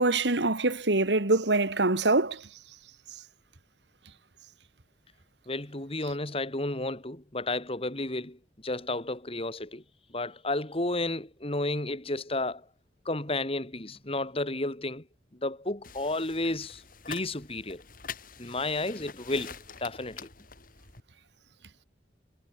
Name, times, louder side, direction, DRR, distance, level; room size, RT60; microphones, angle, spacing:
voice 1, 0.0-2.4, right 2 dB, 80° right, 2.2 m, -24 dB
voice 2, 5.5-9.8 10.1-12.7 13.0-15.1 15.3-16.8 17.1-17.8 18.4-19.5 19.8-20.3, left 2 dB, 35° left, 3.2 m, -32 dB
sound 1, 15.8-21.0, left 6 dB, 50° left, 5.8 m, -45 dB
head